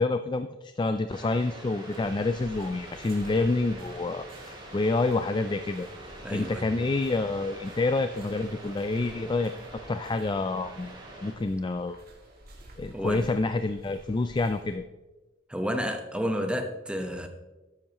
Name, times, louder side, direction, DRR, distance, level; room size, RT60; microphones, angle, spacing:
voice 1, 0.0-5.9 6.3-9.5 9.9-12.0 12.8-14.8, left 3 dB, 25° left, 9 dB, 0.4 m, -28 dB
sound 1, 1.1-11.3, right 1 dB, 25° right, 3.4 m, -45 dB
sound 2, 1.9-14.8, right 1 dB, 50° right, 2.3 m, -51 dB
voice 2, 6.2-6.7 12.9-13.3 15.5-17.3, equal, 5° right, 4 dB, 1.0 m, -31 dB
12.5 x 10.0 x 3.0 m, 1.1 s
head